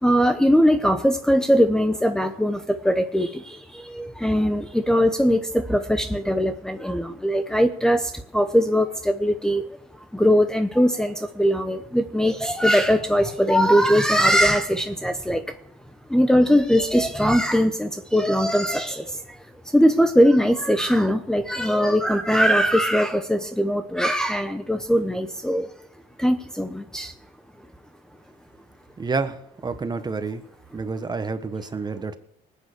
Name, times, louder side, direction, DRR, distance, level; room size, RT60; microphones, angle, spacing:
voice 1, 0.0-9.6 10.1-15.4 16.1-19.2 19.7-25.7 26.2-27.1, equal, 5° left, 5 dB, 0.9 m, -20 dB
voice 2, 29.0-30.4 30.7-32.2, right 4 dB, 25° right, 9 dB, 1.3 m, -29 dB
19.5 x 9.1 x 6.8 m, 0.72 s
cardioid pair, 110°, 17 cm